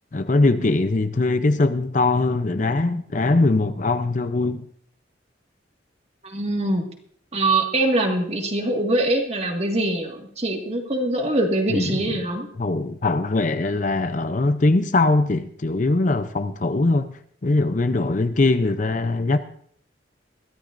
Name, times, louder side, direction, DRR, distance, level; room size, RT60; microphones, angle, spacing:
voice 1, 0.1-4.7 11.7-12.0 12.6-17.1 17.4-19.4, left 2 dB, 45° left, 0.6 m, -21 dB
voice 2, 6.2-6.9 7.3-12.5, right 1 dB, 35° right, 1.9 m, -23 dB
22.0 x 13.0 x 2.6 m
head